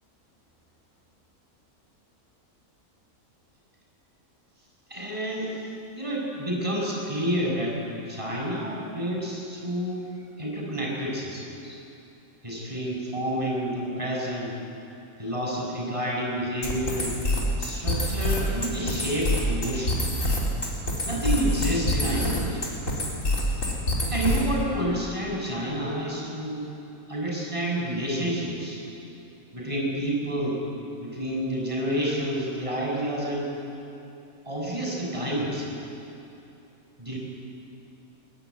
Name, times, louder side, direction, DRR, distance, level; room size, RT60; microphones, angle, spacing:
voice 1, 4.9-5.6 5.9-7.8 8.1-10.1 10.4-11.8 12.4-14.6 15.2-17.2 17.6-20.1 21.1-22.6 24.1-26.7 27.1-28.8 29.5-30.6 31.0-33.5 34.5-35.7 37.0-37.2, right 1 dB, 20° right, -3 dB, 6.4 m, -29 dB
sound 1, 16.6-24.6, left 1 dB, 60° left, 4.3 m, -26 dB
21.5 x 21.5 x 9.4 m, 2.9 s
omnidirectional pair, 1.5 m